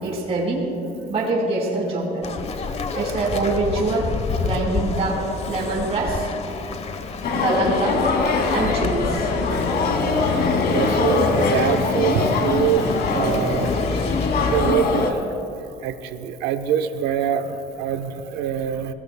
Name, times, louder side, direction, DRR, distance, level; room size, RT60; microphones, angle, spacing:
voice 1, 0.0-0.7 1.1-2.2 2.9-6.3 7.3-8.1 8.5-9.3, right 2 dB, 35° right, -4 dB, 4.6 m, -24 dB
sound 1, 2.2-14.7, left 5 dB, 40° left, 1.1 m, -28 dB
sound 2, 7.2-15.1, left 3 dB, 65° left, 2.6 m, -22 dB
voice 2, 10.7-12.9 13.1-13.8 14.5-15.2 15.8-18.9, right 10 dB, 90° right, 8 dB, 1.0 m, -24 dB
29.0 x 19.0 x 2.3 m, 2.9 s
cardioid pair, 110°, 17 cm